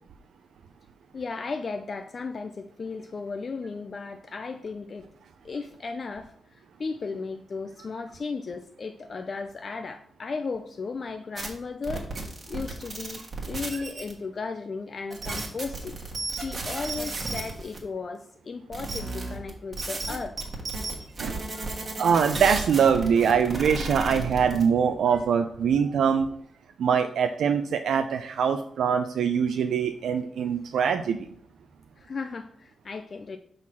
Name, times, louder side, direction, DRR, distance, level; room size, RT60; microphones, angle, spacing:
voice 1, 1.1-5.1 5.4-12.1 12.5-16.0 16.3-20.4 32.0-33.4, left 4 dB, 35° left, 7 dB, 0.3 m, -35 dB
sound 1, 11.4-11.5 11.8-14.1 15.1-17.8 18.7-24.6, right 2 dB, 35° right, 1.4 m, -33 dB
voice 2, 21.2-26.3 26.8-31.3, right 7 dB, 85° right, 7 dB, 0.4 m, -23 dB
5.8 x 3.8 x 6.1 m, 0.65 s
wide cardioid pair, 170°, 0 cm